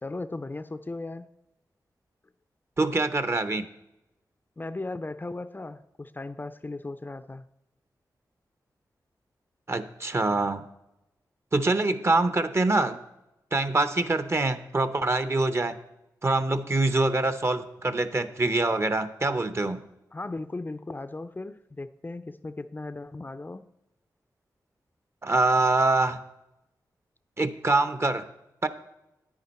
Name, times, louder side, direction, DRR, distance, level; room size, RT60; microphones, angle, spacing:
voice 1, 0.0-1.3 4.6-7.4 20.1-23.6, left 2 dB, 25° left, 12 dB, 0.4 m, -37 dB
voice 2, 2.8-3.7 9.7-10.6 11.5-13.0 13.5-15.8 16.2-19.8 25.2-26.2 27.4-28.2 28.6-28.7, right 2 dB, 35° right, 11 dB, 0.8 m, -24 dB
9.7 x 9.5 x 4.2 m, 0.91 s
cardioid pair, 65°, 7 cm